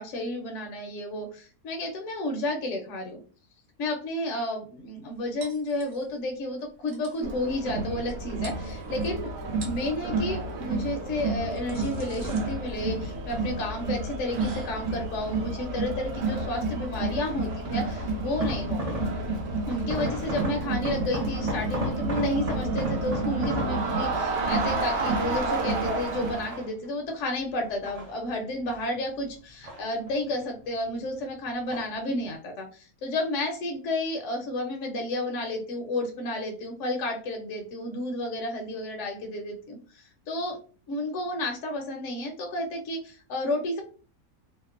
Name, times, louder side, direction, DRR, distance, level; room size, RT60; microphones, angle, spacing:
voice 1, 0.0-3.2 3.8-9.3 9.6-18.8 19.7-40.6 40.9-43.8, left 1 dB, 65° left, 2 dB, 0.8 m, -31 dB
sound 1, 5.4-6.3 6.6-6.7 6.9-7.3 8.1-8.2 8.4-9.1 9.5-9.9 11.1-17.8, right 2 dB, 65° right, 1.1 m, -47 dB
Crowd, 7.2-26.6, right 2 dB, 85° right, 1.2 m, -30 dB
sound 2, 16.2-16.6 17.5-19.4 19.7-24.5 25.0-25.9 26.3-27.1 27.6-29.0 29.2-30.4 30.7-31.3 31.7-32.1 32.4-32.5, right 1 dB, 50° right, 0.4 m, -36 dB
2.8 x 2.0 x 2.3 m, 0.38 s
omnidirectional pair, 1.6 m